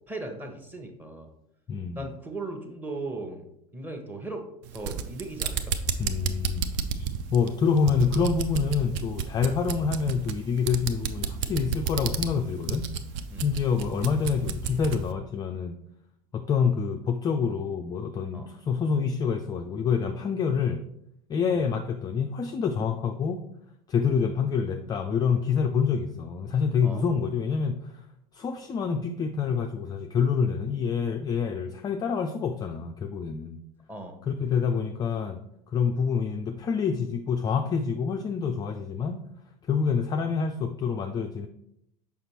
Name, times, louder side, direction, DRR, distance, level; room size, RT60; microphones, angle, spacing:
voice 1, 0.1-1.3 1.9-3.5 3.7-4.5 4.7-5.8 13.3-13.5 18.3-18.5 21.5-21.7 26.8-27.0 33.9-34.2, right 2 dB, 10° right, 4 dB, 0.9 m, -37 dB
voice 2, 1.7-2.1 6.0-6.6 7.0-7.1 7.3-12.9 13.4-15.7 16.3-20.8 21.3-23.4 23.9-27.9 28.3-33.6 34.3-35.4 35.7-39.2 39.7-41.5, left 6 dB, 20° left, 5 dB, 0.3 m, -27 dB
sound 1, 4.6-15.1, right 7 dB, 50° right, 0.5 m, -31 dB
6.4 x 5.2 x 2.9 m, 0.76 s
figure-of-eight pair, 80°, 20 cm